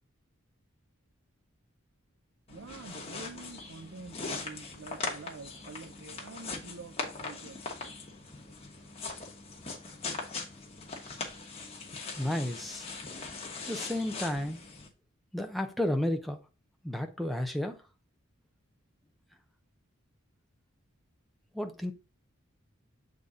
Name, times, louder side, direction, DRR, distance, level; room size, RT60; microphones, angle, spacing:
sound 1, 2.5-14.9, left 4 dB, 30° left, 1.2 m, -40 dB
voice 1, 2.5-7.6, right 3 dB, 65° right, 0.6 m, -47 dB
voice 2, 12.2-12.9 13.7-14.7 15.3-16.4 16.8-17.8 21.5-21.9, left 1 dB, ahead, 0.6 m, -32 dB
7.1 x 4.0 x 3.7 m
head